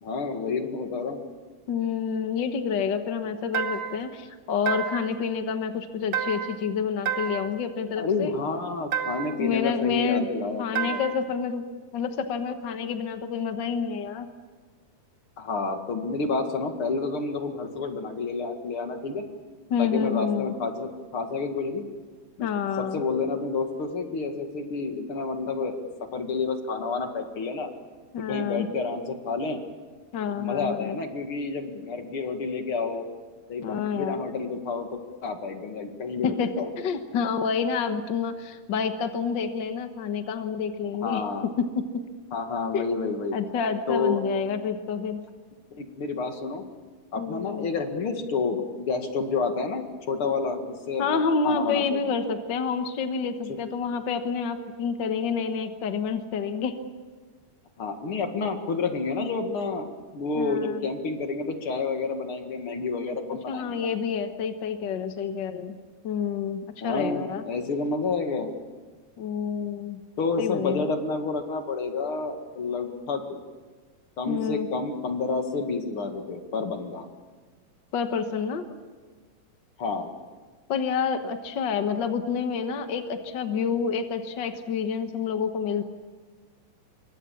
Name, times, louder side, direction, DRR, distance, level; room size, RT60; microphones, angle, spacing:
voice 1, 0.0-1.2 8.0-11.0 15.4-19.3 19.8-21.9 22.4-22.5 22.8-25.7 26.0-27.7 28.3-29.6 30.4-33.0 33.5-36.7 41.0-41.5 42.3-43.4 43.9-44.2 45.7-46.6 47.1-52.1 57.8-59.9 60.1-63.9 66.8-68.5 70.2-73.4 74.2-77.1 79.8-80.1, left 4 dB, 45° left, 5 dB, 2.5 m, -29 dB
voice 2, 1.7-8.3 9.4-10.3 10.6-11.6 11.9-14.3 19.7-20.5 22.4-23.0 28.1-28.7 30.1-31.0 33.6-34.2 36.2-41.2 41.6-42.0 42.7-42.8 43.3-45.2 47.1-47.7 51.0-56.7 60.3-60.8 63.5-65.8 66.0-67.4 69.2-70.0 70.4-70.9 74.2-74.7 77.9-78.6 80.7-85.8, left 6 dB, 60° left, 7 dB, 1.1 m, -28 dB
sound 1, 3.5-4.1 4.7-5.2 6.1-6.7 7.1-7.6 8.9-9.5 10.8-11.3, right 8 dB, 50° right, 1.5 m, -30 dB
26.5 x 23.5 x 7.2 m, 1.4 s
omnidirectional pair, 3.8 m